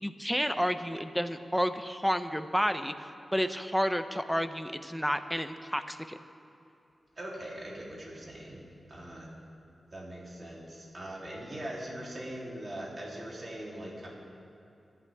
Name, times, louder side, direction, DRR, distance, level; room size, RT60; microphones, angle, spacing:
voice 1, 0.0-2.9 3.3-6.2, equal, ahead, 9 dB, 0.8 m, -30 dB
voice 2, 7.2-8.6 8.9-9.3 9.9-14.1, right 1 dB, 40° right, -4 dB, 3.3 m, -41 dB
25.5 x 11.5 x 3.6 m, 2.7 s
cardioid pair, 70°, 0 cm